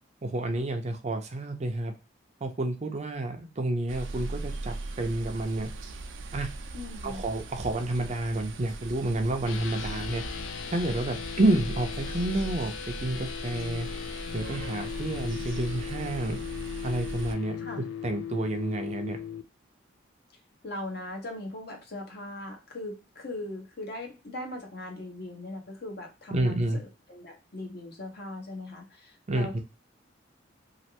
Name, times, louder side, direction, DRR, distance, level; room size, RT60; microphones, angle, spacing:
voice 1, 0.2-1.9 2.4-5.7 6.3-6.5 7.0-10.2 10.7-13.9 14.3-16.4 16.8-17.6 18.0-19.2 26.3-26.8 29.3-29.6, right 2 dB, 35° right, 5 dB, 0.5 m, -29 dB
sound 1, 3.9-17.4, right 2 dB, 85° right, 0.5 m, -39 dB
voice 2, 6.7-7.2 17.6-17.9 20.6-29.6, left 2 dB, 55° left, 1 dB, 1.0 m, -39 dB
sound 2, 9.4-19.4, left 8 dB, 90° left, 0.4 m, -38 dB
3.2 x 2.4 x 2.8 m, 0.30 s
head